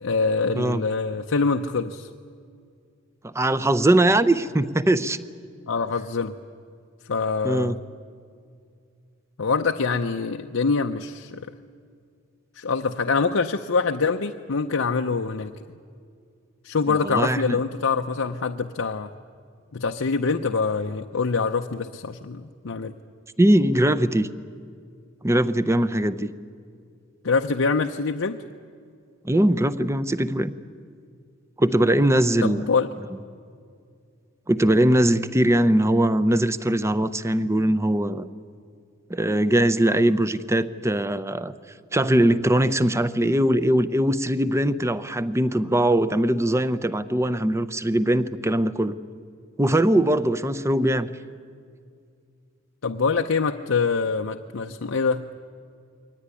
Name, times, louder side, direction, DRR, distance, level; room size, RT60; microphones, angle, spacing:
voice 1, 0.0-2.1 5.7-6.3 7.1-7.8 9.4-11.4 12.5-15.5 16.6-19.1 19.7-22.9 27.2-28.4 32.4-32.9 52.8-55.2, left 4 dB, 80° left, 5 dB, 0.7 m, -24 dB
voice 2, 3.2-5.2 7.4-7.8 16.9-17.6 23.4-24.3 25.2-26.3 29.2-30.5 31.6-32.7 34.5-38.3 39.1-41.5 41.9-49.0 49.6-51.1, right 1 dB, 15° right, 12 dB, 0.7 m, -21 dB
23.0 x 18.5 x 9.9 m, 2.3 s
head